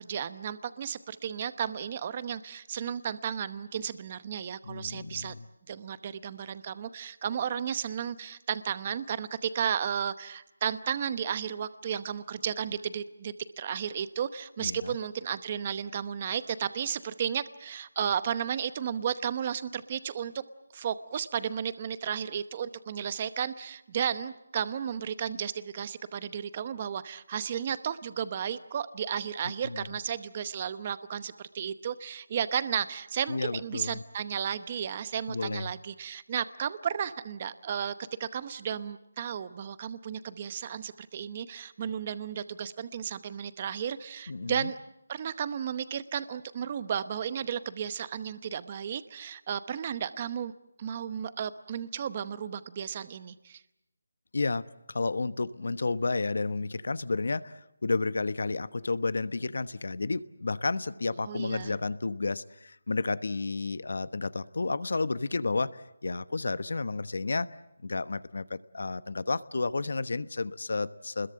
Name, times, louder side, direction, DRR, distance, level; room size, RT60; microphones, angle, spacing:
voice 1, 0.0-5.3 5.7-20.4 20.7-37.9 38.2-44.8 45.1-50.5 50.8-53.6 61.2-61.8, right 8 dB, 20° right, 14 dB, 0.9 m, -33 dB
voice 2, 4.6-5.4 14.6-15.0 29.6-29.9 33.3-34.0 35.3-35.7 44.3-44.7 54.3-67.5 67.8-71.3, left 3 dB, 60° left, 15 dB, 1.1 m, -31 dB
29.0 x 21.5 x 7.7 m, 0.85 s
figure-of-eight pair, 175°, 0 cm